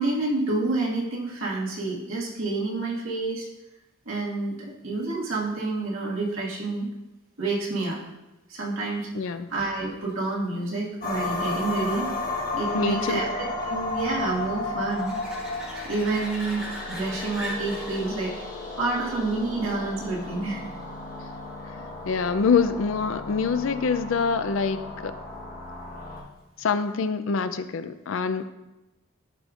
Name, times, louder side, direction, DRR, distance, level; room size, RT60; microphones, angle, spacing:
voice 1, 0.0-3.5 4.1-6.9 7.4-8.0 8.5-12.1 12.5-15.4 15.8-18.3 18.8-20.7, right 3 dB, 80° right, -4 dB, 1.7 m, -29 dB
voice 2, 9.1-9.5 12.7-13.2 21.8-25.1 26.6-28.4, left 5 dB, 75° left, 11 dB, 0.4 m, -25 dB
sound 1, 9.2-20.5 26.2-26.3, equal, 5° right, 1.1 m, -43 dB
sound 2, 11.0-26.2, left 2 dB, 45° left, 1.2 m, -34 dB
12.0 x 5.1 x 2.4 m, 1.0 s
head